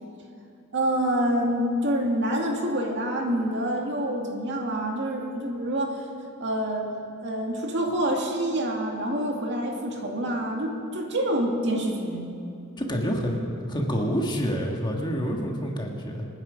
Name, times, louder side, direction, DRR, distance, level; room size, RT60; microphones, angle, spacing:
voice 1, 0.7-6.0 6.4-6.9 7.2-12.2, right 1 dB, 55° right, 1 dB, 2.3 m, -27 dB
voice 2, 12.8-13.4 13.7-16.3, equal, 20° left, 1 dB, 1.8 m, -27 dB
27.0 x 10.0 x 5.3 m, 2.7 s
head